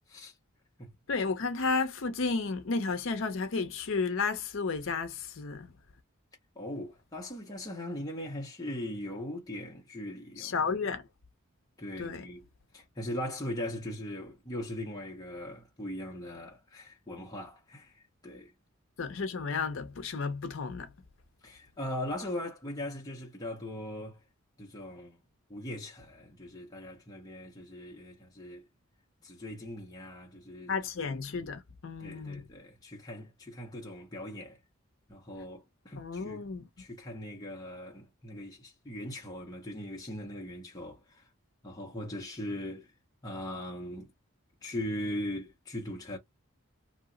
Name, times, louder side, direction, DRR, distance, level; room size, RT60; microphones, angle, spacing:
voice 1, 1.1-5.7 10.4-11.0 12.0-12.2 19.0-20.9 30.7-32.4 36.0-36.7, left 4 dB, 60° left, 0.5 m, -32 dB
voice 2, 6.6-10.6 11.8-12.5 12.7-18.5 21.4-24.2 24.6-25.2 25.5-28.6 29.2-30.7 31.0-31.2 32.0-34.6 35.1-36.5 36.8-41.3 41.6-42.9 43.2-44.1 44.6-46.2, left 1 dB, 15° left, 0.6 m, -40 dB
2.7 x 2.0 x 3.7 m
head